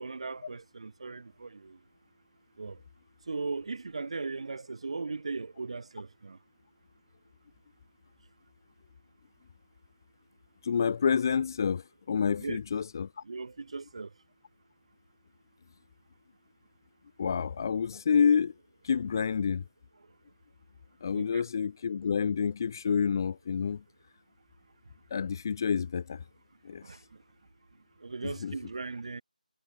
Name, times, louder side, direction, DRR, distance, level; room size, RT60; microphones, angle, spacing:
voice 1, 0.0-1.8 2.6-2.8 3.3-6.4 12.4-12.6 13.2-14.1 21.1-21.4 26.8-27.0 28.0-29.2, right 4 dB, 45° right, 4.6 m, -38 dB
voice 2, 10.6-13.2 17.2-18.5 18.8-19.6 21.0-23.8 25.1-26.2 26.6-26.8 28.2-28.5, left 6 dB, 25° left, 0.9 m, -28 dB
figure-of-eight pair, 160°, 5 cm